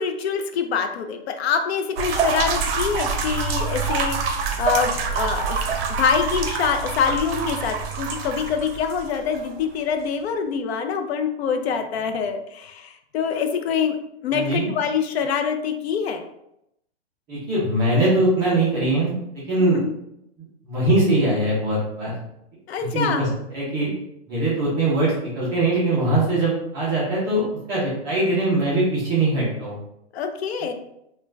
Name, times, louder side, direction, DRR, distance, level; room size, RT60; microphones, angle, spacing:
voice 1, 0.0-5.6 6.0-14.0 14.2-16.2 19.7-19.9 22.7-23.3 30.1-30.7, left 6 dB, 70° left, 7 dB, 0.5 m, -25 dB
sound 1, 2.0-9.5, right 5 dB, 60° right, 0.5 m, -26 dB
voice 2, 14.3-14.7 17.3-19.8 20.6-22.2 22.9-23.9 24.3-27.4 27.7-29.8, right 2 dB, 10° right, -8 dB, 0.3 m, -22 dB
2.3 x 2.2 x 3.1 m, 0.81 s
hypercardioid pair, 145°, 33 cm